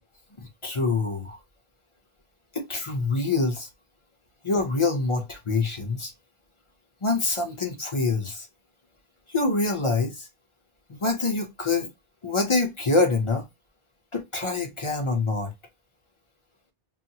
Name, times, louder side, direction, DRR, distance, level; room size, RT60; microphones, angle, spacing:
voice 1, 0.4-1.4 2.5-3.7 4.4-6.1 7.0-8.5 9.3-10.3 10.9-11.9 12.2-13.5 14.1-15.5, left 3 dB, 35° left, 0.7 m, -25 dB
4.0 x 2.0 x 2.7 m
omnidirectional pair, 1.1 m